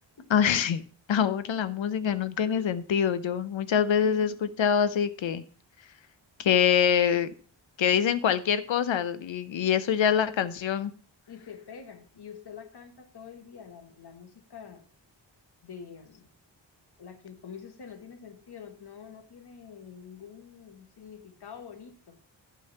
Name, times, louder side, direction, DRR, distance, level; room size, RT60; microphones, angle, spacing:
voice 1, 0.3-0.8 1.1-5.4 6.4-7.3 7.8-10.9, left 8 dB, 80° left, 13 dB, 0.8 m, -25 dB
voice 2, 11.3-14.8 15.6-16.3 17.0-22.2, left 7 dB, 60° left, 6 dB, 1.5 m, -46 dB
11.5 x 4.0 x 6.5 m, 0.41 s
wide cardioid pair, 160°, 45 cm